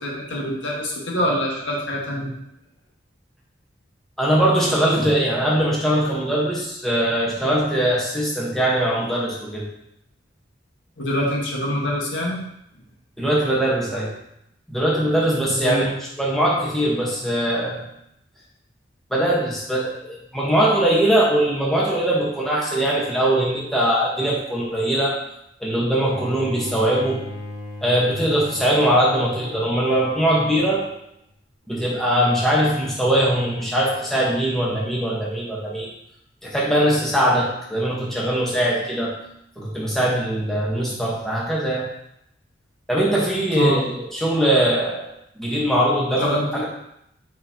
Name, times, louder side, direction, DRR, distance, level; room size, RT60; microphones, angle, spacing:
voice 1, 0.0-2.3 11.0-12.4 15.5-15.9 43.5-43.8 46.2-46.7, left 1 dB, 80° left, -3 dB, 1.6 m, -25 dB
voice 2, 4.2-9.7 13.2-14.1 14.7-15.9 16.2-17.9 19.1-25.1 25.6-27.2 27.8-30.9 31.7-35.9 36.4-39.2 39.6-41.9 42.9-45.1 45.4-46.7, right 1 dB, ahead, -6 dB, 1.3 m, -21 dB
Bowed string instrument, 26.0-31.1, left 1 dB, 45° right, 1.2 m, -37 dB
6.7 x 5.2 x 2.9 m, 0.77 s
head